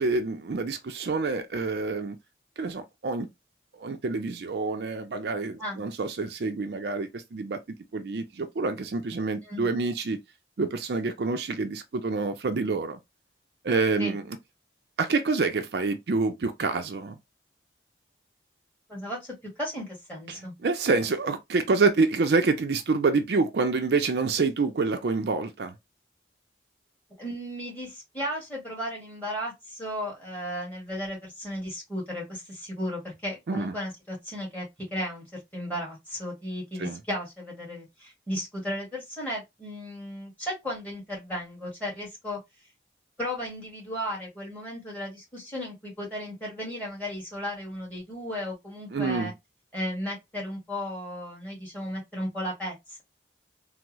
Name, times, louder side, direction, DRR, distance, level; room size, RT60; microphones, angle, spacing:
voice 1, 0.0-2.2 2.6-3.3 3.8-7.6 7.9-10.2 10.6-13.0 13.6-14.4 15.0-17.2 20.3-25.7 33.5-33.7 36.8-37.0 48.9-49.3, right 3 dB, 65° right, 0.4 m, -27 dB
voice 2, 18.9-20.5 27.2-42.4 43.2-49.3 49.7-53.0, equal, 10° left, 1.6 m, -35 dB
3.4 x 2.0 x 2.9 m
head